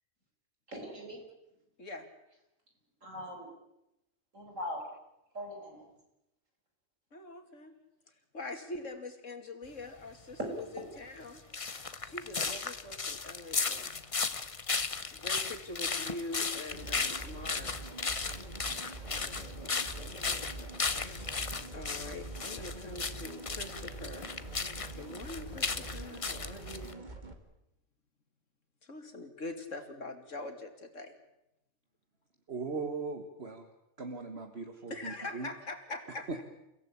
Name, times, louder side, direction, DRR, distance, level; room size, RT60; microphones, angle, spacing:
voice 1, 0.7-1.2 3.0-3.5 4.3-4.9 5.3-5.8, left 1 dB, 65° right, 2 dB, 5.9 m, -41 dB
voice 2, 7.1-7.7 8.1-11.4 12.0-14.0 15.1-17.7 19.1-21.3 21.7-24.3 24.9-27.1 28.8-31.1 34.9-36.4, left 2 dB, 65° left, 6 dB, 3.0 m, -44 dB
sound 1, 11.2-26.9, left 4 dB, 30° left, 0.9 m, -35 dB
sound 2, 16.7-27.3, right 2 dB, 35° right, 2.4 m, -45 dB
voice 3, 32.5-33.7 34.0-35.5 36.3-36.4, right 4 dB, 50° right, 5 dB, 1.9 m, -39 dB
29.5 x 15.5 x 8.6 m, 0.88 s
omnidirectional pair, 1.4 m